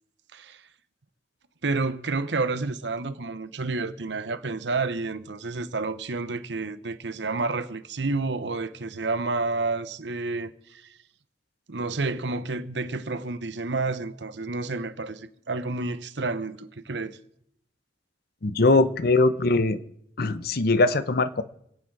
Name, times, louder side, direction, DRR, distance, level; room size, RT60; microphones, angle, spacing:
voice 1, 1.6-10.8 11.7-17.2, right 3 dB, 75° right, 0.9 m, -30 dB
voice 2, 18.4-19.8 20.2-21.4, left 2 dB, 60° left, 0.8 m, -21 dB
25.0 x 8.9 x 4.8 m
head